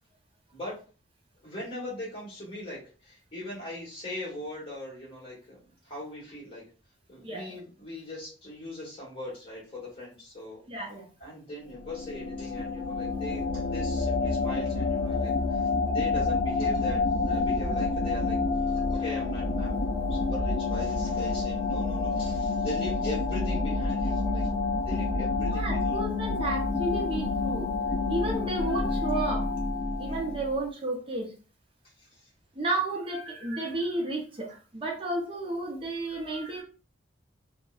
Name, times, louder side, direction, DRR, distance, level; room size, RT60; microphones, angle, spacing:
voice 1, 1.4-6.6 7.1-10.6 11.2-24.5 24.9-26.0 30.0-30.4 32.0-32.3, left 1 dB, 30° left, -5 dB, 1.3 m, -40 dB
voice 2, 7.2-7.6 10.7-11.1 25.4-27.7 28.1-31.3 32.5-36.6, right 2 dB, 30° right, -1 dB, 0.6 m, -32 dB
sound 1, 11.7-30.6, left 3 dB, 45° left, 0.4 m, -28 dB
2.6 x 2.0 x 2.3 m, 0.36 s
head